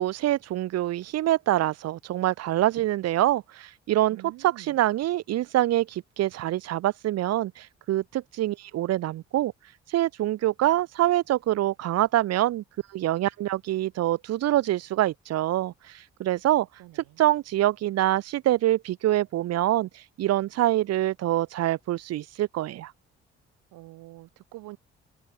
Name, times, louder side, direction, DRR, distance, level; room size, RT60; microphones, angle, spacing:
voice 1, 0.0-4.2 4.4-9.5 9.9-12.6 12.9-16.7 17.2-22.9, right 14 dB, 50° right, 0.6 m, -25 dB
voice 2, 4.1-4.8 16.8-17.2 23.7-24.8, right 18 dB, 75° right, 6.7 m, -46 dB
open air
hypercardioid pair, 40°, 32 cm